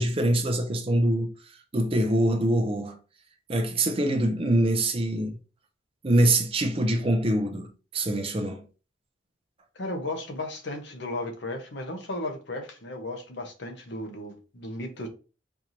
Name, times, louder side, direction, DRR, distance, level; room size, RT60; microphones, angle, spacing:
voice 1, 0.0-3.0 3.5-5.4 6.0-8.6, right 1 dB, 30° right, 0.5 m, -24 dB
voice 2, 9.7-15.1, left 1 dB, 60° left, 0.9 m, -35 dB
4.5 x 2.6 x 2.9 m
head